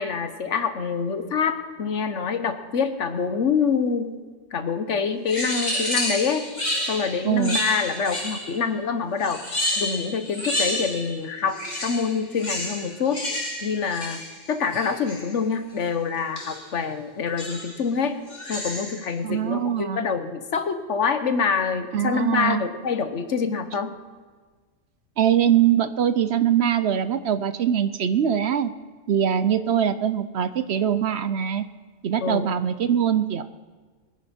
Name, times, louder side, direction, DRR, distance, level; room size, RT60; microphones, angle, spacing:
voice 1, 0.0-4.2 4.5-6.5 6.9-9.4 9.8-11.6 11.8-13.2 13.6-14.2 14.5-18.2 18.5-23.9 32.2-32.5, left 5 dB, 70° left, 9 dB, 1.4 m, -26 dB
sound 1, 5.3-8.6 9.2-11.2 11.5-15.3 16.4-16.7 17.4-17.8 18.3-19.1, left 1 dB, 35° left, 2.8 m, -30 dB
voice 2, 7.2-7.6 19.2-20.1 21.9-22.6 25.2-28.7 29.1-31.6 32.0-33.4, right 9 dB, 65° right, 12 dB, 0.9 m, -22 dB
23.0 x 10.5 x 4.3 m, 1.4 s
omnidirectional pair, 1.3 m